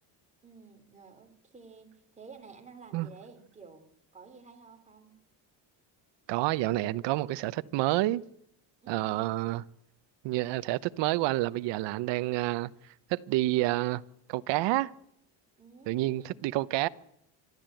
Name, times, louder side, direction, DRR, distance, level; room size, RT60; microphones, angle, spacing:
voice 1, 0.4-5.1 15.6-16.7, right 5 dB, 15° right, 3.3 m, -52 dB
voice 2, 6.3-8.2 8.9-9.6 10.2-12.7 13.1-14.0 14.3-14.9 15.9-16.9, right 17 dB, 65° right, 1.0 m, -28 dB
25.5 x 12.5 x 9.1 m
cardioid pair, 155°, 45 cm